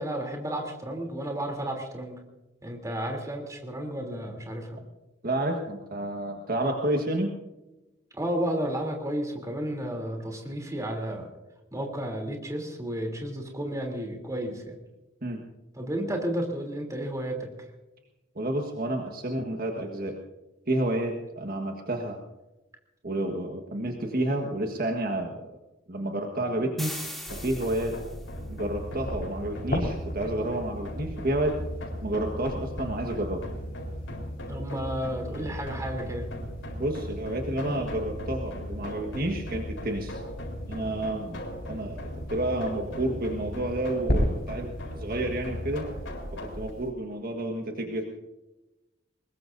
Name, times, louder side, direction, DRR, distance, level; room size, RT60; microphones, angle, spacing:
voice 1, 0.0-2.2 2.6-4.8 8.1-11.3 11.7-14.7 15.7-17.7 34.5-36.3, right 1 dB, 20° right, 2 dB, 3.2 m, -32 dB
voice 2, 5.2-7.3 15.2-15.4 18.3-20.1 20.7-22.2 23.0-25.5 25.9-26.9 27.4-27.9 28.5-31.6 32.0-33.4 36.8-40.2 40.7-44.7 44.9-45.9 46.3-48.0, right 1 dB, 50° right, 3 dB, 1.5 m, -30 dB
sound 1, 26.8-28.3, equal, ahead, 2.8 m, -39 dB
sound 2, 27.3-46.7, equal, 85° left, 4.3 m, -37 dB
sound 3, 28.6-46.9, equal, 55° left, 4.7 m, -38 dB
23.0 x 21.0 x 2.7 m, 1.0 s
head